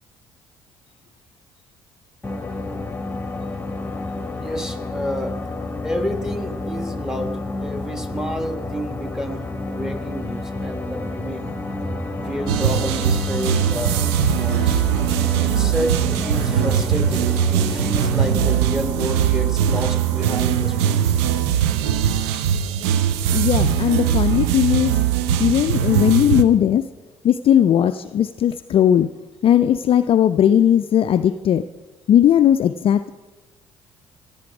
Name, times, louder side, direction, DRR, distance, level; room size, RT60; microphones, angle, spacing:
sound 1, 2.2-18.6, left 2 dB, 15° left, 1.1 m, -30 dB
voice 1, 4.4-5.3 5.8-11.4 12.2-13.9 14.3-14.8 15.4-21.1, equal, 5° right, 8 dB, 1.3 m, -29 dB
sound 2, 11.3-24.6, right 1 dB, 35° right, 5.0 m, -42 dB
sound 3, 12.5-26.4, right 9 dB, 75° right, 0.6 m, -20 dB
voice 2, 23.3-25.0 25.4-26.9 27.2-29.1 29.4-31.6 32.1-33.1, left 10 dB, 40° left, 11 dB, 0.4 m, -17 dB
16.0 x 8.5 x 4.9 m, 1.2 s
figure-of-eight pair, 50°, 14 cm